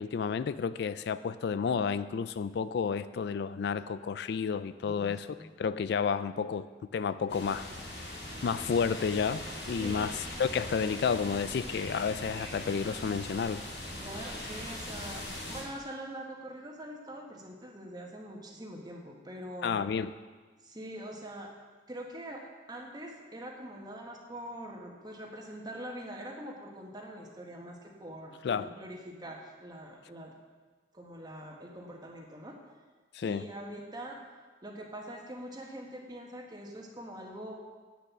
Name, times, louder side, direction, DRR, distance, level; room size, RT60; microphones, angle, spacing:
voice 1, 0.0-5.3 5.6-6.7 6.9-7.7 8.4-13.6 19.6-20.1 28.4-28.7 33.1-33.4, left 6 dB, 65° left, 14 dB, 0.3 m, -31 dB
voice 2, 4.8-5.5 9.8-10.1 14.0-19.8 20.6-21.5 21.9-30.4 30.9-32.6 33.2-34.2 34.6-37.5, right 1 dB, 25° right, 1 dB, 1.4 m, -44 dB
sound 1, 7.3-15.6, left 1 dB, 80° left, 4.0 m, -40 dB
9.3 x 6.9 x 7.3 m, 1.4 s
head